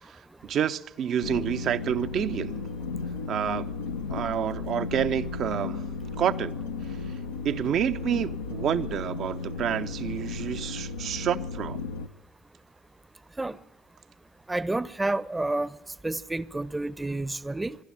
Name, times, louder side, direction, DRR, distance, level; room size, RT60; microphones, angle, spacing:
voice 1, 0.4-2.7 3.3-3.7 4.1-5.8 6.2-6.5 7.4-11.8, right 9 dB, 55° right, 0.8 m, -28 dB
sound 1, 1.2-12.1, left 4 dB, 80° left, 0.8 m, -34 dB
voice 2, 14.5-15.8 16.0-17.8, right 2 dB, 15° right, 0.8 m, -29 dB
24.0 x 12.0 x 9.0 m
figure-of-eight pair, 50°, 0 cm